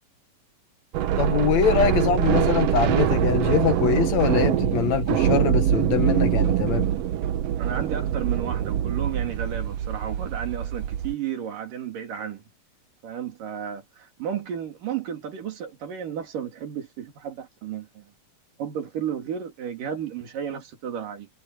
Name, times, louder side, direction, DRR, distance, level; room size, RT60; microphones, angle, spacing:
sound 1, 0.9-11.1, right 11 dB, 70° right, 1.6 m, -24 dB
voice 1, 1.2-6.9, left 8 dB, 60° left, 2.6 m, -23 dB
voice 2, 7.6-12.4 13.0-18.1 18.6-21.3, right 8 dB, 85° right, 4.4 m, -33 dB
omnidirectional pair, 3.7 m